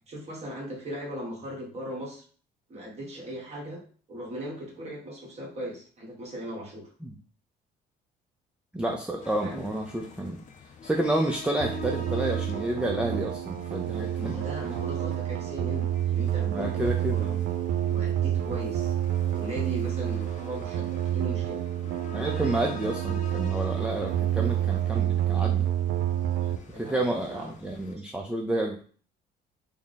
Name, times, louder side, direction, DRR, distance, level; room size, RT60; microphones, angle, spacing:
voice 1, 0.1-2.2 2.7-3.8 4.1-6.9 9.4-9.7 13.9-17.4 17.9-18.9 19.3-21.6 26.4-27.8, equal, 40° right, -3 dB, 1.3 m, -38 dB
voice 2, 8.7-10.4 10.8-14.4 16.5-17.4 22.1-25.7 26.8-28.8, right 1 dB, 5° right, 1 dB, 0.4 m, -30 dB
sound 1, 9.2-27.9, left 5 dB, 50° left, 0.6 m, -46 dB
sound 2, 11.6-26.6, right 11 dB, 70° right, 0.4 m, -28 dB
3.4 x 2.0 x 3.9 m, 0.43 s
cardioid pair, 110°, 17 cm